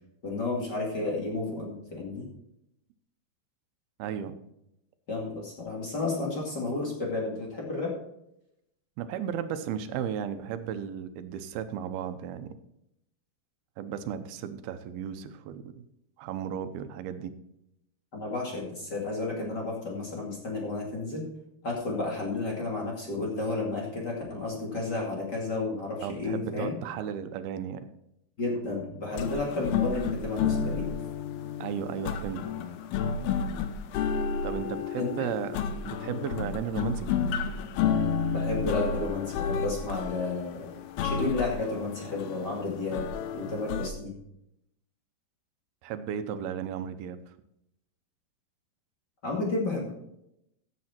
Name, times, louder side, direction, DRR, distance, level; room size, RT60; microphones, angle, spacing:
voice 1, 0.2-2.3 5.1-7.9 18.1-21.3 21.6-26.8 28.4-30.9 33.5-33.6 35.0-35.2 38.3-40.7 41.0-43.1 43.3-44.1 49.2-49.9, left 3 dB, 30° left, -2 dB, 2.3 m, -32 dB
voice 2, 4.0-4.4 9.0-12.5 13.8-15.8 16.2-17.3 26.0-27.8 31.6-32.4 34.4-35.6 35.8-37.1 45.8-47.2, right 8 dB, 90° right, 10 dB, 2.7 m, -34 dB
sound 1, 29.1-43.9, left 6 dB, 80° left, 2.8 m, -31 dB
15.0 x 7.6 x 4.4 m, 0.82 s
omnidirectional pair, 4.4 m